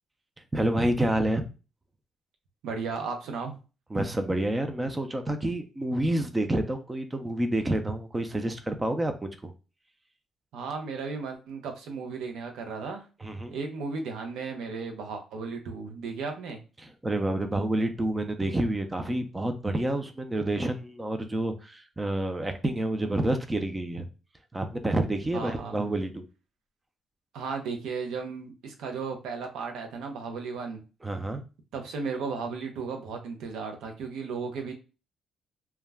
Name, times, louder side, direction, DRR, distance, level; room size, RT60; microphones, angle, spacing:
voice 1, 0.5-1.5 3.9-9.5 13.2-13.6 16.8-24.1 24.5-26.2 31.0-31.4, right 1 dB, 15° right, 6 dB, 0.4 m, -28 dB
voice 2, 2.6-3.6 10.5-13.1 13.5-16.6 25.3-25.8 27.3-30.8 31.7-34.7, right 5 dB, 85° right, 3 dB, 0.5 m, -35 dB
2.2 x 2.1 x 3.3 m, 0.32 s
cardioid pair, 90°, 0 cm